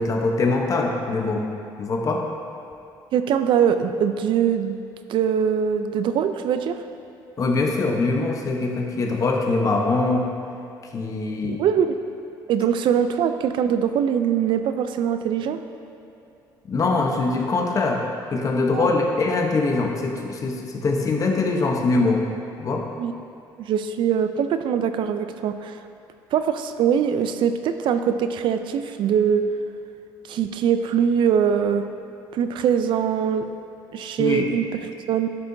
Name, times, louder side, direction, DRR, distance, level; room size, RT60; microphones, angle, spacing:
voice 1, 0.0-1.5 1.8-2.2 7.4-10.3 10.9-11.6 16.7-18.0 18.3-22.2 22.6-22.9 34.2-34.5, left 3 dB, 40° left, 1 dB, 0.8 m, -23 dB
voice 2, 3.1-4.8 5.1-6.8 11.4-12.0 12.5-15.6 18.7-18.9 23.0-23.1 23.6-25.8 26.3-29.4 30.3-31.9 32.3-33.5 33.9-35.4, right 8 dB, 65° right, 9 dB, 0.4 m, -22 dB
10.5 x 6.7 x 2.7 m, 2.5 s
cardioid pair, 100°, 9 cm